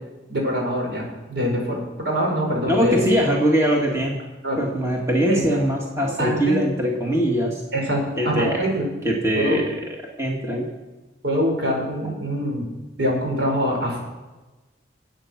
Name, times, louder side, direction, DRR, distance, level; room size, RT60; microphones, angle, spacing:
voice 1, 0.3-3.1 4.4-4.6 5.3-5.4 6.0-6.6 7.7-8.8 9.3-9.6 11.2-12.7 13.0-14.0, equal, 75° right, -1 dB, 5.7 m, -24 dB
voice 2, 2.7-4.2 4.6-7.6 8.2-8.6 9.0-9.7 10.2-10.7 12.0-12.1, equal, 15° right, -1 dB, 2.0 m, -22 dB
24.0 x 8.9 x 6.1 m, 1.2 s
head